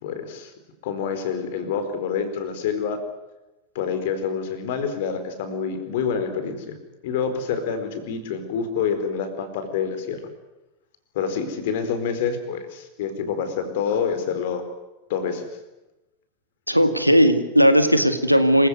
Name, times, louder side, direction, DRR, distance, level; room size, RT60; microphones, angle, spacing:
voice 1, 0.0-0.5 0.8-3.0 3.7-6.8 7.0-10.2 11.1-14.6 15.1-15.5, left 6 dB, 50° left, 9 dB, 4.5 m, -27 dB
voice 2, 16.7-18.7, equal, 90° right, 9 dB, 2.2 m, -17 dB
27.0 x 16.5 x 9.6 m, 1.0 s
figure-of-eight pair, 90°, 0 cm